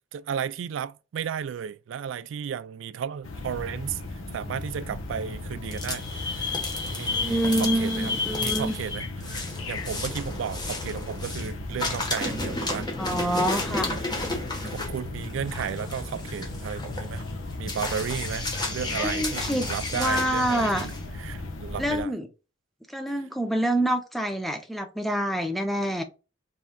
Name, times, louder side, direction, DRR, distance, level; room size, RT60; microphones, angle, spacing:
voice 1, 0.1-4.0 4.3-6.6 6.9-8.1 8.4-9.4 9.7-12.9 14.6-17.2 17.6-20.9 21.2-22.1, right 8 dB, 70° right, 0.3 m, -34 dB
sound 1, 3.2-22.0, left 2 dB, 85° left, 0.9 m, -36 dB
sound 2, 5.6-11.5 11.8-21.0, left 3 dB, 20° left, 1.1 m, -32 dB
voice 2, 7.1-8.7 13.0-14.0 19.0-20.9 21.8-22.3 22.9-26.0, right 1 dB, ahead, 0.6 m, -27 dB
4.2 x 3.7 x 2.2 m
head